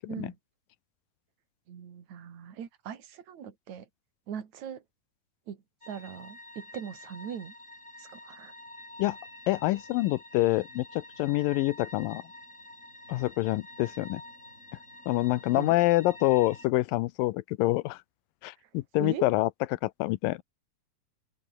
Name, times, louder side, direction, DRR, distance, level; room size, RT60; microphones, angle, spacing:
voice 1, 1.7-3.9 4.3-4.8 5.5-5.6 5.9-7.5 8.0-8.5 15.6-15.8 19.0-19.3, right 8 dB, 55° right, 3.8 m, -40 dB
sound 1, 5.8-16.7, left 1 dB, 20° left, 8.2 m, -48 dB
voice 2, 9.5-12.2 13.1-14.2 15.1-18.0 18.4-20.4, left 18 dB, 80° left, 2.4 m, -26 dB
omnidirectional pair, 4.1 m